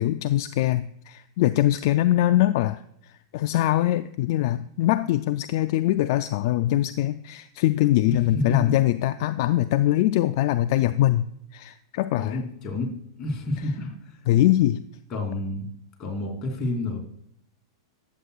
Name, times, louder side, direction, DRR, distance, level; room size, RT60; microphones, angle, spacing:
voice 1, 0.0-12.4 14.3-14.8, left 14 dB, 60° left, 12 dB, 0.3 m, -23 dB
voice 2, 8.1-8.8 12.2-12.9 13.2-14.2 15.1-15.7 16.0-17.0, left 2 dB, 30° left, -1 dB, 3.0 m, -29 dB
11.0 x 7.9 x 2.4 m, 0.71 s
hypercardioid pair, 120°, 2 cm